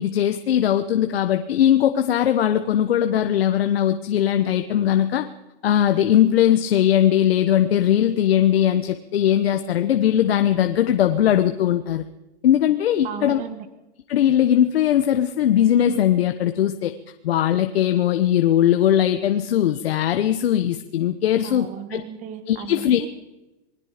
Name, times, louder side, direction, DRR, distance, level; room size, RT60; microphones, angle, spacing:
voice 1, 0.0-5.3 5.6-12.0 12.4-13.4 14.1-16.9 17.2-22.0 22.5-23.0, left 10 dB, 65° left, 8 dB, 1.3 m, -19 dB
voice 2, 13.0-13.7 21.4-23.1, right 9 dB, 25° right, 9 dB, 1.7 m, -35 dB
28.0 x 20.5 x 5.1 m, 1.0 s
hypercardioid pair, 160°, 32 cm